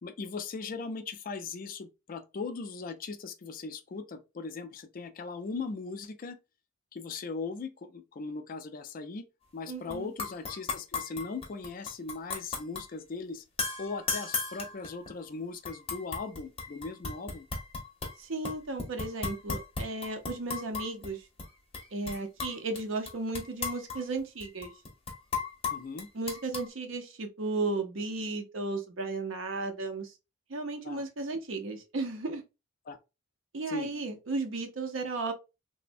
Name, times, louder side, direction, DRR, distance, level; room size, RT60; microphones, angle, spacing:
voice 1, 0.0-6.4 6.9-9.2 9.5-13.4 13.8-17.5 25.7-26.1 30.8-31.1 32.9-33.0 33.7-33.9, left 4 dB, 45° left, 0.4 m, -39 dB
voice 2, 9.7-10.1 18.2-21.2 21.9-24.7 26.1-30.1 30.5-32.4 33.5-35.3, right 3 dB, 80° right, 0.7 m, -34 dB
sound 1, 9.9-10.0 10.2-12.9 13.6-15.2 15.6-18.2 18.4-21.1 21.4-21.5 21.7-22.8 23.1-26.7, left 4 dB, 30° left, 0.8 m, -36 dB
3.2 x 2.1 x 2.5 m
head